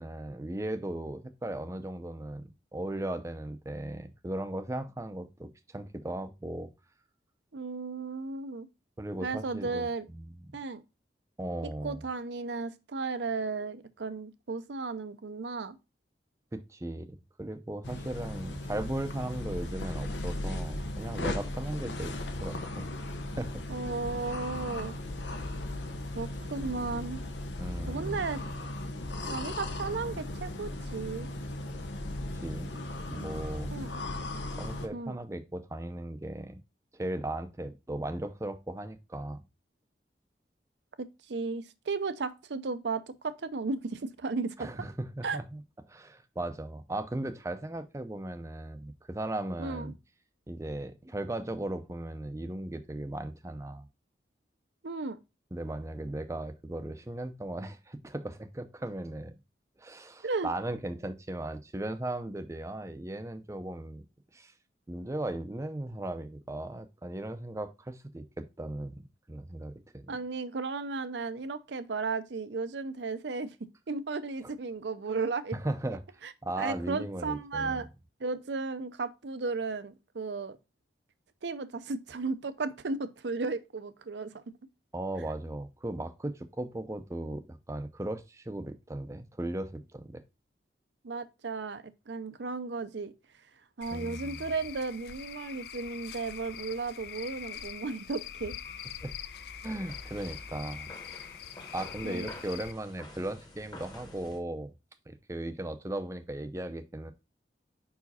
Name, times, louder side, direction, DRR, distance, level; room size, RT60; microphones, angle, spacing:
voice 1, 0.0-6.7 9.0-10.5 11.4-12.0 16.5-22.1 22.4-22.9 23.3-23.6 27.6-28.3 32.4-32.7 33.1-33.7 34.6-36.6 36.9-39.4 44.6-45.6 45.9-49.9 50.5-53.8 55.5-59.4 59.8-64.0 64.3-64.5 64.9-70.1 75.5-76.0 76.4-77.8 84.9-90.2 93.9-94.5 99.0-99.1 99.6-100.9 101.7-104.7 105.1-107.1, right 1 dB, 15° right, 0.5 m, -37 dB
voice 2, 7.5-8.7 9.2-10.1 10.5-10.8 11.8-15.8 23.7-24.9 26.2-27.2 27.9-28.4 29.2-31.3 33.7-33.9 34.9-35.2 41.0-44.7 45.2-45.4 49.6-49.9 54.8-55.2 60.2-60.5 70.1-73.6 73.9-75.6 76.2-77.9 78.2-80.6 81.4-84.4 91.0-93.1 93.8-98.5 102.0-102.3, right 4 dB, 80° right, 0.6 m, -34 dB
sound 1, 17.8-34.9, left 1 dB, 90° left, 0.9 m, -37 dB
Cricket / Frog, 93.8-102.7, left 9 dB, 60° left, 0.4 m, -44 dB
sound 2, 98.6-104.4, left 1 dB, 25° left, 1.1 m, -49 dB
5.0 x 4.8 x 4.1 m
head